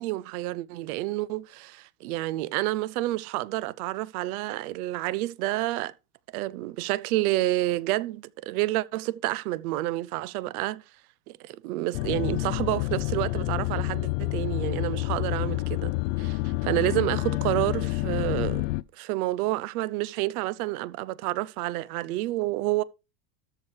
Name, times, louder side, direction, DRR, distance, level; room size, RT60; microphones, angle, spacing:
voice 1, 0.0-5.9 6.3-10.8 11.3-18.7 19.0-22.8, right 17 dB, 65° right, 0.7 m, -29 dB
sound 1, 11.9-18.8, left 20 dB, 55° left, 0.5 m, -28 dB
13.5 x 4.7 x 4.8 m
supercardioid pair, 135°, 48 cm